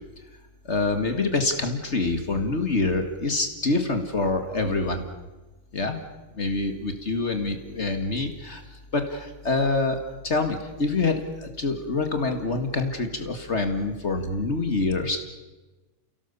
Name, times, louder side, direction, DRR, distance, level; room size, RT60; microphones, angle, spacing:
voice 1, 0.7-5.0 5.7-6.0 6.3-8.6 8.9-10.0 10.2-15.2, left 3 dB, 45° left, 6 dB, 2.2 m, -26 dB
30.0 x 17.5 x 6.9 m, 1.2 s
omnidirectional pair, 1.6 m